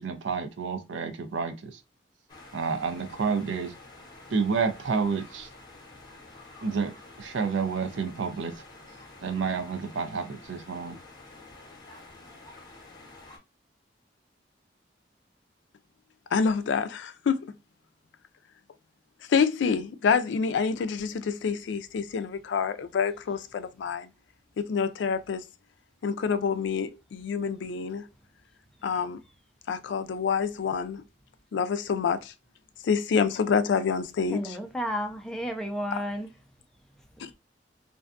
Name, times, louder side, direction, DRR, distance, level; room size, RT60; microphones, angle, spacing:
voice 1, 0.0-1.7 2.5-3.7 4.3-5.5 6.6-8.5 9.2-11.0, right 5 dB, 90° right, 0.5 m, -29 dB
sound 1, 2.3-13.4, left 2 dB, 25° left, 0.8 m, -49 dB
voice 2, 16.3-17.5 19.3-24.1 24.6-25.4 26.0-28.1 28.8-29.2 29.7-31.0 31.5-32.3 32.8-34.4 37.2-37.3, left 6 dB, 70° left, 0.3 m, -27 dB
voice 3, 34.3-36.3, equal, 5° left, 0.4 m, -32 dB
2.5 x 2.2 x 2.4 m
head